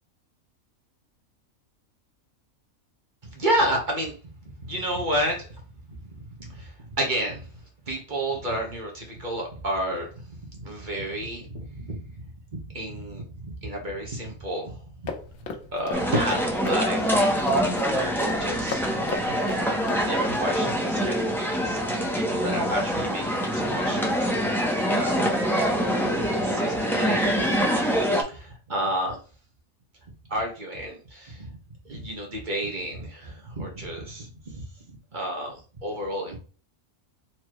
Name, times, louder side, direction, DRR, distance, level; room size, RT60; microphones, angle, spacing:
voice 1, 3.3-4.1 4.6-5.6 5.9-7.5 7.9-12.2 12.7-15.1 15.7-18.9 20.0-21.8 22.2-24.3 24.9-25.2 26.1-27.4 28.3-29.2 30.3-31.6 31.8-36.4, right 1 dB, 35° right, 0 dB, 1.2 m, -31 dB
sound 1, 15.1-20.0, left 5 dB, 90° left, 1.3 m, -36 dB
sound 2, 15.9-28.2, equal, ahead, 0.6 m, -25 dB
4.2 x 3.0 x 3.1 m, 0.37 s
omnidirectional pair, 1.5 m